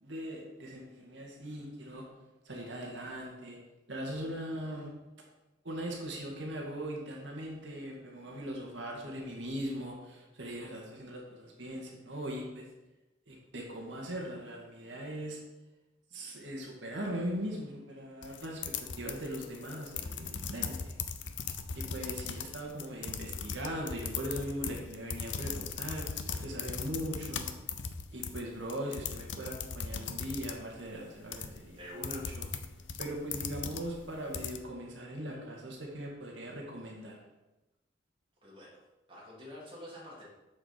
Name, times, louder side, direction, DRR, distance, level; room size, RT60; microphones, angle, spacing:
voice 1, 0.0-2.1 2.5-3.6 3.9-4.9 5.6-12.7 13.3-15.4 16.1-20.9 21.7-27.5 28.1-32.5 33.0-37.2, equal, 75° right, -1 dB, 2.0 m, -40 dB
sound 1, 18.2-34.6, left 6 dB, 75° left, 0.7 m, -39 dB
voice 2, 31.8-32.2 38.4-38.8 39.1-40.2, left 1 dB, 30° right, -6 dB, 3.5 m, -47 dB
7.5 x 6.8 x 5.8 m, 1.0 s
head